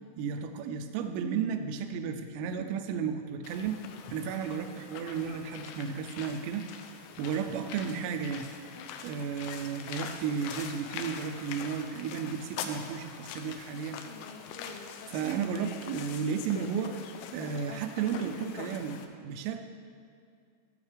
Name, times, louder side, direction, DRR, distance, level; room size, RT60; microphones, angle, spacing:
voice 1, 0.2-3.8 4.1-6.7 7.2-8.5 9.0-14.0 15.1-17.0 17.3-19.6, right 7 dB, 85° right, 7 dB, 3.2 m, -33 dB
sound 1, 3.4-19.1, left 7 dB, 80° left, 2.7 m, -43 dB
15.5 x 7.2 x 3.4 m, 2.3 s
omnidirectional pair, 5.8 m